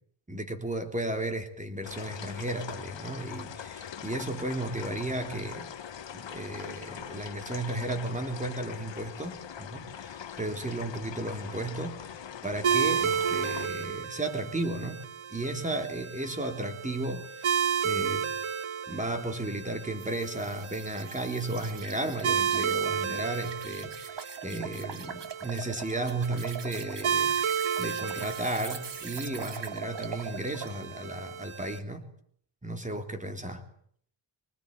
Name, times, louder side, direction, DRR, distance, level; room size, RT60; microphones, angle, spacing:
voice 1, 0.3-5.7 6.1-12.0 12.4-15.0 15.3-17.6 17.8-18.3 18.9-32.1 32.6-33.6, right 2 dB, 15° right, 5 dB, 3.6 m, -34 dB
sound 1, 1.8-13.7, left 8 dB, 65° left, 1.1 m, -42 dB
sound 2, 12.6-31.8, right 7 dB, 90° right, 1.5 m, -33 dB
sound 3, 20.0-30.8, right 6 dB, 60° right, 2.3 m, -42 dB
26.0 x 22.0 x 9.2 m, 0.64 s
wide cardioid pair, 160°, 47 cm